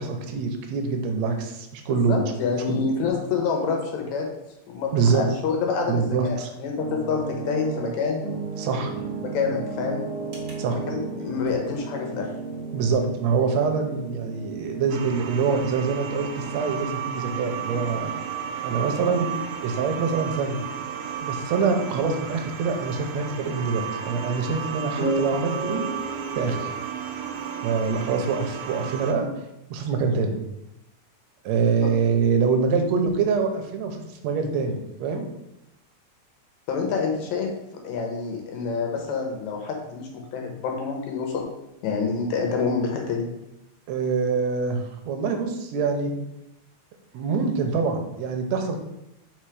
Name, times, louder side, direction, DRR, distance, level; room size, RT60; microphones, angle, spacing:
voice 1, 0.0-2.3 2.7-2.8 4.9-5.2 5.9-6.5 8.6-9.1 10.6-10.8 12.7-18.1 18.6-19.3 19.6-20.6 21.2-25.8 26.3-26.7 27.6-29.3 29.7-30.3 31.4-34.0 34.2-35.2 43.9-46.1 47.1-48.8, right 5 dB, 70° right, 4 dB, 1.9 m, -25 dB
voice 2, 2.1-4.3 4.7-8.2 9.2-10.0 10.7-12.3 31.8-31.9 36.7-37.5 37.8-41.5 41.8-43.3, left 5 dB, 75° left, 2 dB, 2.3 m, -27 dB
sound 1, 6.8-22.3 22.6-22.8 25.0-26.7, right 3 dB, 55° right, 0.9 m, -35 dB
sound 2, 14.9-29.1, right 8 dB, 90° right, 2.1 m, -33 dB
4.5 x 4.4 x 4.8 m, 0.89 s
omnidirectional pair, 3.5 m